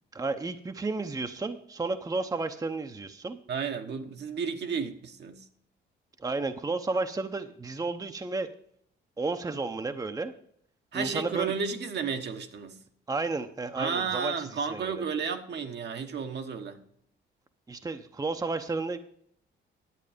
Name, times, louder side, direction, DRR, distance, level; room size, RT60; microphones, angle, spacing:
voice 1, 0.1-3.4 6.2-8.5 9.2-10.3 10.9-11.5 13.1-14.9 17.7-19.0, right 3 dB, 20° right, 7 dB, 0.8 m, -32 dB
voice 2, 3.5-5.5 10.9-12.8 13.8-16.8, right 6 dB, 60° right, 6 dB, 1.2 m, -32 dB
11.0 x 8.3 x 5.1 m, 0.65 s
cardioid pair, 90°, 20 cm